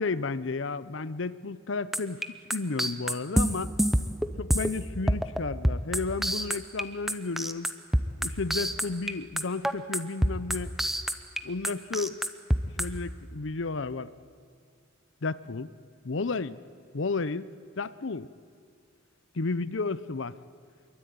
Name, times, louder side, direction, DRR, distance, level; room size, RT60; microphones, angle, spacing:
voice 1, 0.0-2.2 2.5-3.7 4.4-7.7 8.2-10.7 11.4-12.2 12.8-14.1 15.2-15.7 16.0-16.6 16.9-17.5 17.8-18.3 19.4-20.4, left 3 dB, 65° left, 16 dB, 0.7 m, -32 dB
sound 1, 1.9-4.8 5.1-5.4 5.6-6.8 7.1-9.1 9.4-11.4 11.6-12.8, equal, ahead, 0.9 m, -26 dB
25.5 x 23.0 x 9.5 m, 2.2 s
head